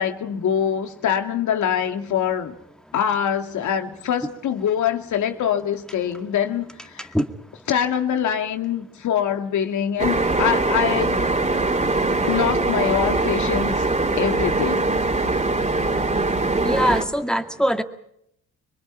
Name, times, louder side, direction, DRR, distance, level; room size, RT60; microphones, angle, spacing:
voice 1, 0.0-2.5 2.9-7.1 7.7-11.3 12.3-13.9 14.2-14.9, left 9 dB, 75° left, 2.5 m, -24 dB
sound 1, 10.0-17.0, right 2 dB, 25° right, 3.7 m, -22 dB
voice 2, 16.6-17.8, equal, ahead, 2.2 m, -22 dB
25.5 x 22.5 x 5.9 m
cardioid pair, 90°, 30 cm